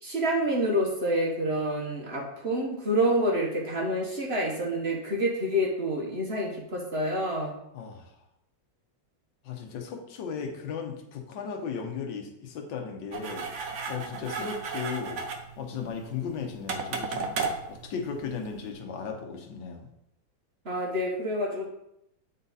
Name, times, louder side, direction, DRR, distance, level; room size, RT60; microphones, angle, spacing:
voice 1, 0.0-7.6 20.6-21.7, equal, 40° right, -1 dB, 1.0 m, -28 dB
voice 2, 7.7-8.1 9.4-15.2 15.6-19.9, left 6 dB, 70° left, 3 dB, 1.6 m, -36 dB
sound 1, 13.1-18.7, right 4 dB, 60° right, 0.8 m, -35 dB
8.1 x 4.1 x 4.0 m, 0.79 s
omnidirectional pair, 2.1 m